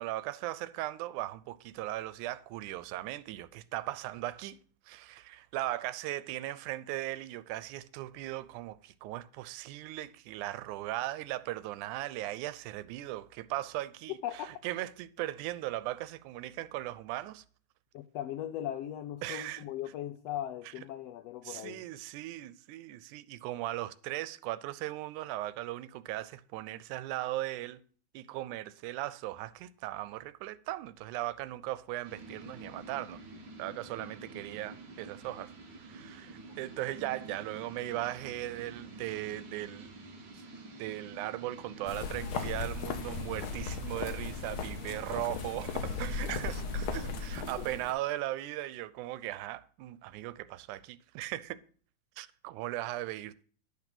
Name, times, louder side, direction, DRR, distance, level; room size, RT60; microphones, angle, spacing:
voice 1, 0.0-4.6 4.9-17.4 19.2-19.6 21.5-27.8 28.1-33.2 33.6-35.5 35.8-40.0 40.8-51.6 52.2-53.4, right 15 dB, 90° right, 2.1 m, -38 dB
voice 2, 17.9-21.8 36.4-36.6, left 11 dB, 85° left, 1.4 m, -38 dB
sound 1, 32.0-47.8, right 2 dB, 40° right, 2.0 m, -48 dB
sound 2, 41.9-47.9, left 5 dB, 65° left, 1.4 m, -37 dB
10.5 x 5.9 x 6.0 m
omnidirectional pair, 3.4 m